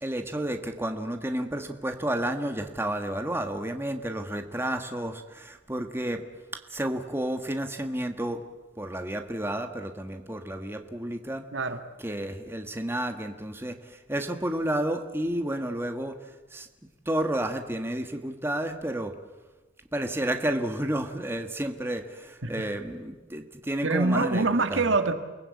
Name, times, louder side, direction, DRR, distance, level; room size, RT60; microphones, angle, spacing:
voice 1, 0.0-6.2 6.5-8.4 8.8-11.4 12.0-16.2 16.5-16.7 17.0-19.1 19.9-24.8, right 1 dB, 10° right, 6 dB, 1.5 m, -31 dB
voice 2, 23.8-25.1, right 3 dB, 85° right, 8 dB, 1.8 m, -25 dB
29.0 x 19.5 x 8.5 m, 1.2 s
head